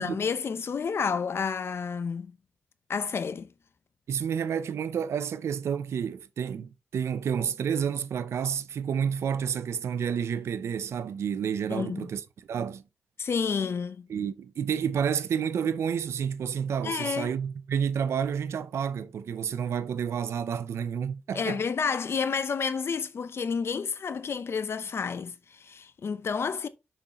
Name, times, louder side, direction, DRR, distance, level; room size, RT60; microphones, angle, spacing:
voice 1, 0.0-2.3 2.9-3.5 11.7-12.1 13.2-14.1 16.8-17.3 21.3-26.7, left 6 dB, 65° left, 0.7 m, -30 dB
voice 2, 4.1-12.2 12.5-12.8 14.1-21.6, right 7 dB, 90° right, 0.6 m, -30 dB
6.5 x 5.8 x 3.0 m
cardioid pair, 65°, 4 cm